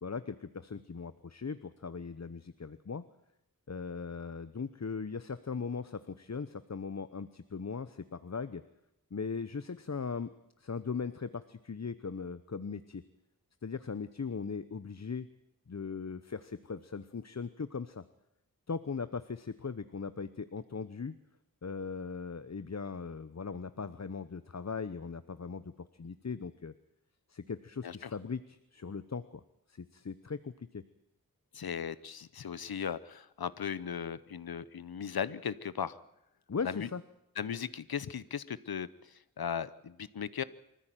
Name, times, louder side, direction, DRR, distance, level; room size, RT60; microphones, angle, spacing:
voice 1, 0.0-3.0 3.7-8.6 9.1-10.3 10.6-13.0 13.6-15.3 15.7-18.0 18.7-21.1 21.6-26.7 27.3-29.4 29.7-30.8 36.5-37.0, left 5 dB, 50° left, 13 dB, 1.0 m, -39 dB
voice 2, 31.5-36.0 36.6-36.9 37.4-40.4, left 7 dB, 90° left, 17 dB, 0.9 m, -37 dB
24.5 x 14.5 x 9.2 m, 0.82 s
wide cardioid pair, 55°, 36 cm